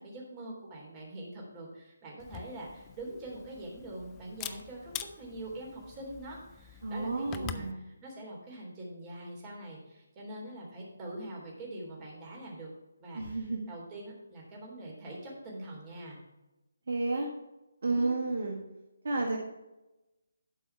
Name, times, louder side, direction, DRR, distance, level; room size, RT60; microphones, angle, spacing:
voice 1, 0.0-12.7 13.0-16.2 17.8-18.2, right 1 dB, 20° right, -2 dB, 3.3 m, -44 dB
Camera, 2.2-7.7, left 11 dB, 20° left, 0.5 m, -45 dB
voice 2, 6.8-7.8 13.1-13.7 16.9-17.3 17.8-18.6 19.0-19.4, right 3 dB, 55° right, 1 dB, 1.5 m, -31 dB
12.0 x 4.7 x 5.7 m, 1.0 s
figure-of-eight pair, 150°, 0 cm